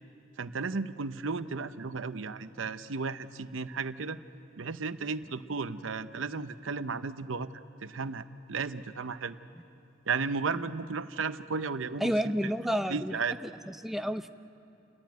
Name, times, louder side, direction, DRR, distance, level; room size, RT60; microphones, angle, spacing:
voice 1, 0.4-4.2 4.6-7.5 7.8-9.4 10.1-12.3 12.9-13.4, right 4 dB, 90° right, 12 dB, 0.7 m, -34 dB
voice 2, 12.0-13.2 13.7-14.3, equal, ahead, 9 dB, 0.5 m, -30 dB
29.5 x 14.5 x 9.4 m, 2.8 s
head